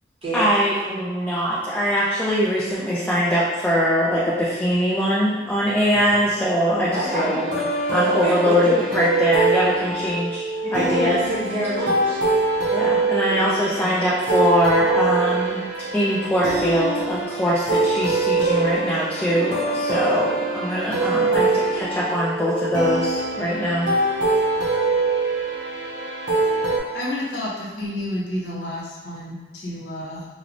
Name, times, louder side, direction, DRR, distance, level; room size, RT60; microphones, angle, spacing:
voice 1, 0.3-7.5 7.9-11.2 12.7-15.6 15.9-23.9, equal, 10° left, -8 dB, 0.3 m, -22 dB
voice 2, 6.7-7.3 8.1-8.8 10.6-12.2 13.3-13.7, right 1 dB, 35° right, -7 dB, 0.8 m, -27 dB
sound 1, 7.1-26.8, right 3 dB, 75° right, 0.6 m, -23 dB
voice 3, 26.9-30.3, left 1 dB, 70° left, -4 dB, 0.7 m, -30 dB
3.0 x 2.0 x 2.5 m, 1.2 s
head